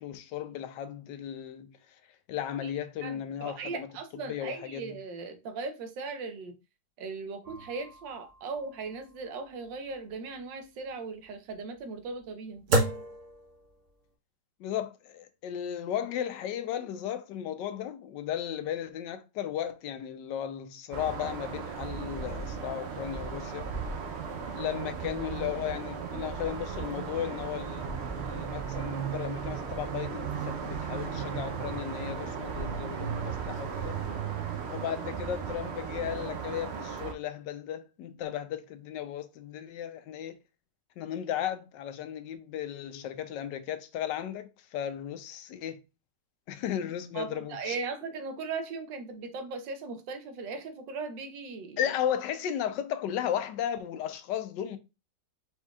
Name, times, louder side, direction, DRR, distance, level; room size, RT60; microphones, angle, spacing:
voice 1, 0.0-1.7 2.3-3.9 4.3-4.9 14.6-23.7 24.5-34.0 34.7-40.4 41.0-45.8 46.5-47.8 51.8-54.8, left 10 dB, 85° left, 1.3 m, -35 dB
voice 2, 3.0-6.5 7.0-12.6 47.1-51.9, right 4 dB, 90° right, 1.5 m, -38 dB
sound 1, 7.4-14.1, right 2 dB, 50° right, 1.1 m, -34 dB
sound 2, 20.9-37.1, right 6 dB, 65° right, 0.6 m, -36 dB
4.5 x 4.3 x 2.3 m
omnidirectional pair, 1.9 m